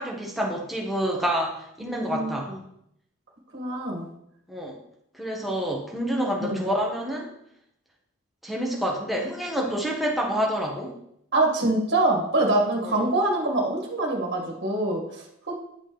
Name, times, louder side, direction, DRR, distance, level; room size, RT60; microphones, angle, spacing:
voice 1, 0.0-2.6 4.5-4.8 5.1-7.3 8.4-11.0 12.8-13.1, equal, ahead, -2 dB, 1.3 m, -28 dB
voice 2, 1.8-2.6 3.5-4.1 6.4-6.6 11.3-15.5, right 2 dB, 55° right, 0 dB, 1.8 m, -25 dB
10.0 x 5.5 x 3.2 m, 0.74 s
head